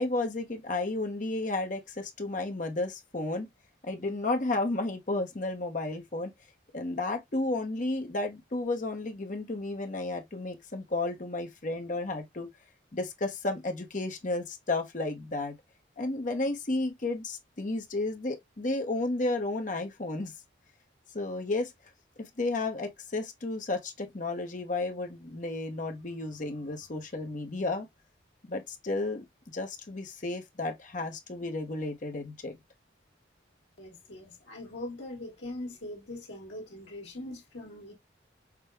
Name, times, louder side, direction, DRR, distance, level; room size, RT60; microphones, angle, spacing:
voice 1, 0.0-3.5 3.8-6.3 6.7-12.5 12.9-15.6 16.0-20.3 21.1-21.7 22.2-27.9 28.4-29.2 29.5-32.6, left 2 dB, 40° left, 0.9 m, -32 dB
voice 2, 33.8-37.9, left 1 dB, 70° left, 1.7 m, -41 dB
6.0 x 2.2 x 3.4 m
head